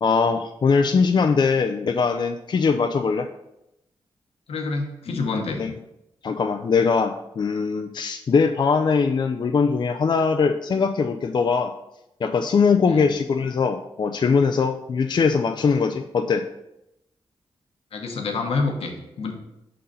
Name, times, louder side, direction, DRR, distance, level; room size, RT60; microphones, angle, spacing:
voice 1, 0.0-3.3 5.1-5.3 5.6-5.7 6.2-11.7 12.2-16.5, left 5 dB, 50° left, 6 dB, 0.4 m, -21 dB
voice 2, 4.5-5.6 12.9-13.1 17.9-19.3, left 3 dB, 80° left, 3 dB, 1.0 m, -27 dB
5.5 x 3.8 x 5.4 m, 0.88 s
cardioid pair, 60°, 10 cm